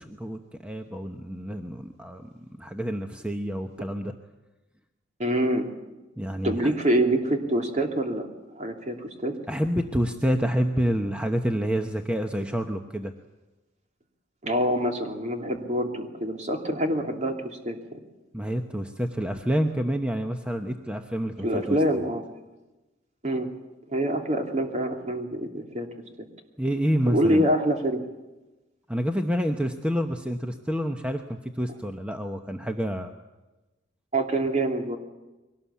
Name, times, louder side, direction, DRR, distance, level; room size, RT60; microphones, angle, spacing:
voice 1, 0.0-2.3 2.6-4.1 6.2-6.7 9.5-13.1 18.3-21.8 26.6-27.4 28.9-33.1, equal, 5° right, 5 dB, 1.0 m, -28 dB
voice 2, 5.2-5.7 6.4-8.3 8.5-9.3 14.4-18.0 21.4-22.2 23.2-23.5 23.9-25.9 27.1-28.0 34.1-35.0, right 1 dB, 35° right, 3 dB, 2.9 m, -25 dB
23.0 x 18.5 x 8.5 m, 1.1 s
head